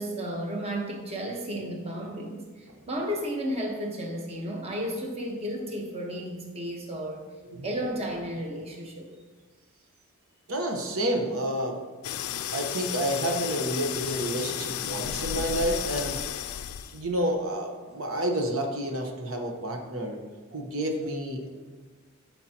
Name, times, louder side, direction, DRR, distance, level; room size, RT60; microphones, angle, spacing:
voice 1, 0.0-7.3 7.6-9.1, equal, 30° right, 0 dB, 1.2 m, -33 dB
voice 2, 10.5-11.8 12.5-16.2 16.9-20.2 20.5-21.5, right 1 dB, 80° right, 2 dB, 1.1 m, -29 dB
sound 1, 12.0-17.1, left 10 dB, 90° left, 0.4 m, -33 dB
12.5 x 5.8 x 2.9 m, 1.3 s
head